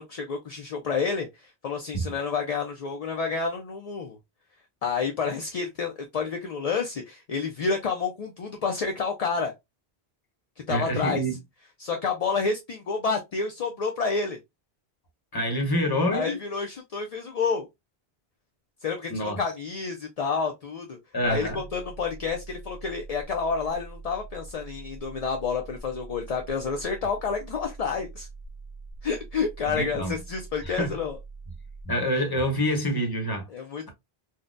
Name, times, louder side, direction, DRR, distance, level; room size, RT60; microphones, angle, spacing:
voice 1, 0.0-4.2 4.8-9.5 10.7-11.2 11.8-14.4 16.1-17.7 18.8-21.0 21.2-28.3 29.0-31.2 33.5-33.9, left 5 dB, 50° left, 0.5 m, -29 dB
voice 2, 10.7-11.3 15.3-16.4 19.1-19.4 21.1-21.6 29.7-30.2 30.6-30.9 31.8-33.5, equal, 25° left, 0.9 m, -26 dB
sound 1, 21.2-31.8, right 4 dB, 35° right, 0.7 m, -44 dB
3.8 x 2.2 x 2.5 m
omnidirectional pair, 1.1 m